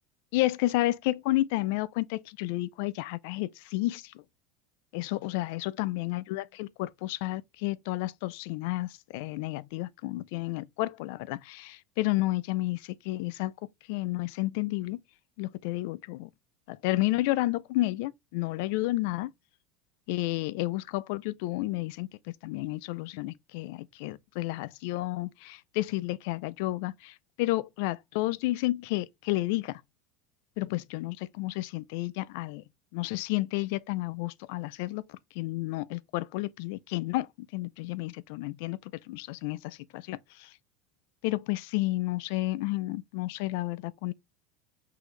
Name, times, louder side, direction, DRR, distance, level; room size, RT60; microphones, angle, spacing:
voice 1, 0.3-4.2 4.9-13.5 13.9-15.0 15.4-16.3 16.7-19.3 20.1-29.8 30.6-32.6 32.9-40.5 41.2-44.1, left 18 dB, 70° left, 0.4 m, -31 dB
6.1 x 2.8 x 3.1 m
supercardioid pair, 95°, 0 cm